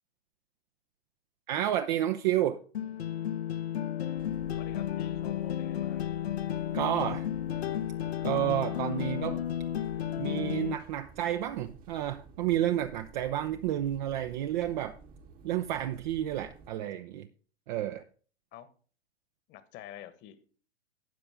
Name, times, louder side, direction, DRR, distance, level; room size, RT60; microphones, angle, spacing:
voice 1, 1.5-2.6 6.7-7.3 8.2-9.4 10.2-15.0 15.4-17.3 17.7-18.0, right 12 dB, 45° right, 0.8 m, -30 dB
sound 1, 2.7-10.7, left 11 dB, 70° left, 1.1 m, -33 dB
sound 2, 4.2-16.7, right 5 dB, 25° right, 1.2 m, -53 dB
voice 2, 4.6-6.1 18.5-18.7 19.5-20.5, left 11 dB, 30° left, 1.4 m, -48 dB
12.5 x 8.6 x 3.6 m
figure-of-eight pair, 110°, 32 cm